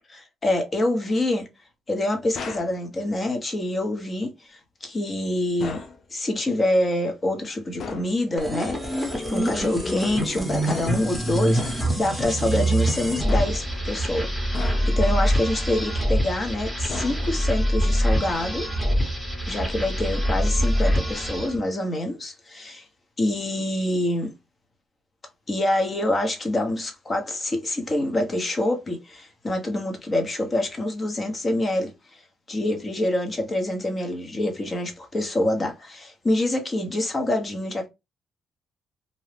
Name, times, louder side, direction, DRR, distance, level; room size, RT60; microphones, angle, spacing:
voice 1, 0.1-1.5 1.9-5.8 6.1-18.7 19.4-22.8 23.2-24.3 25.5-31.9 32.5-37.9, left 1 dB, 30° left, 1.0 m, -26 dB
sound 1, 2.3-2.8 5.6-6.0 7.8-8.2 10.7-11.1 11.6-12.0 13.3-13.8 14.5-15.1 16.9-17.6, left 4 dB, 55° left, 0.6 m, -36 dB
sound 2, 8.4-21.6, equal, 10° left, 1.1 m, -25 dB
2.7 x 2.3 x 3.3 m
cardioid pair, 90°, 0 cm